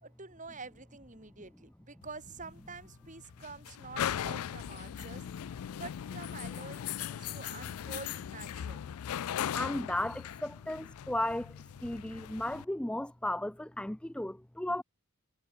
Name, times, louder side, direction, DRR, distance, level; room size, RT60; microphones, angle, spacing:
voice 1, 0.0-5.2 5.7-8.9, right 4 dB, 35° right, 4.3 m, -47 dB
sound 1, 2.0-12.6, left 9 dB, 80° left, 0.4 m, -39 dB
voice 2, 9.5-11.5 11.8-14.8, left 1 dB, 5° left, 0.4 m, -35 dB
head